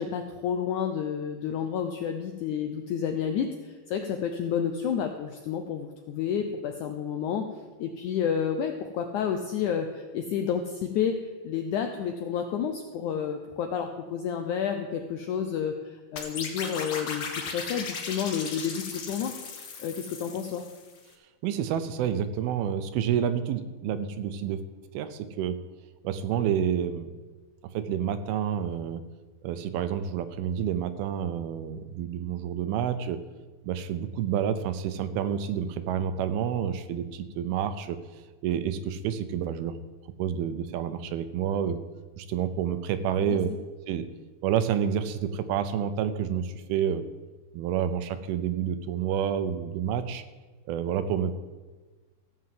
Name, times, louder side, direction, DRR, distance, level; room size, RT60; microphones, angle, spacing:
voice 1, 0.0-7.5 7.8-19.3 19.8-20.6 43.2-43.4, left 7 dB, 80° left, 5 dB, 1.7 m, -30 dB
sound 1, 16.2-21.0, left 5 dB, 55° left, 1.6 m, -37 dB
voice 2, 21.4-24.6 24.9-25.6 26.0-27.1 27.7-29.0 29.4-33.2 33.6-38.0 38.4-39.8 40.2-41.8 42.2-43.5 43.9-44.1 44.4-47.0 47.5-50.2 50.7-51.3, right 9 dB, 80° right, 11 dB, 2.6 m, -29 dB
15.5 x 6.2 x 7.7 m, 1.3 s
omnidirectional pair, 4.4 m